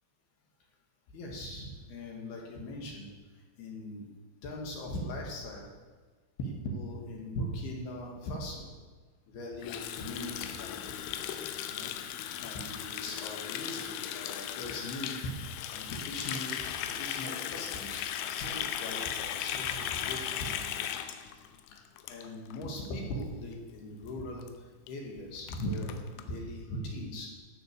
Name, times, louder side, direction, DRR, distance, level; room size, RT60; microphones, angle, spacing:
voice 1, 1.1-3.1 3.6-4.1 4.4-5.7 6.4-8.7 9.3-11.0 11.7-11.9 12.4-15.4 15.7-18.0 18.4-20.5 22.1-27.3, left 1 dB, 60° left, -1 dB, 3.3 m, -40 dB
Water tap faucet, 9.6-22.6 22.9-23.2 23.5-23.8 24.1-24.2 24.4-24.5 24.9-25.0 25.2-26.2, left 10 dB, 85° left, 3.4 m, -37 dB
14.0 x 9.0 x 6.7 m, 1.4 s
omnidirectional pair, 5.8 m